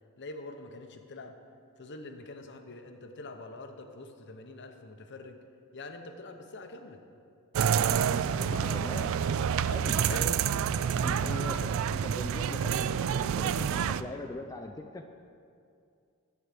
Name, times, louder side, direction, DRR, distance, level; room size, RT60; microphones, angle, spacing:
voice 1, 0.2-1.4 1.8-5.4 5.7-7.0 8.1-8.9 10.0-10.4, left 2 dB, 55° left, 6 dB, 0.8 m, -44 dB
sound 1, 7.5-14.0, right 8 dB, 65° right, 0.3 m, -28 dB
voice 2, 8.3-9.1 9.7-10.3 11.0-15.1, left 2 dB, 15° left, 4 dB, 0.4 m, -41 dB
13.5 x 4.7 x 6.7 m, 2.4 s
head